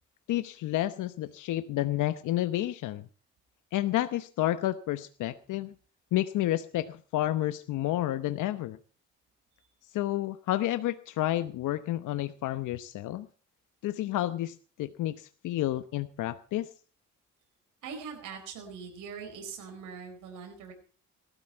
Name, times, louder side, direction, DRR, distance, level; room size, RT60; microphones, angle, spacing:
voice 1, 0.3-3.0 3.7-5.7 6.1-8.8 9.9-13.3 13.8-16.7, left 14 dB, 85° left, 11 dB, 0.9 m, -30 dB
voice 2, 17.8-20.7, right 6 dB, 85° right, 2 dB, 4.7 m, -42 dB
19.0 x 13.0 x 4.5 m, 0.40 s
cardioid pair, 90°, 30 cm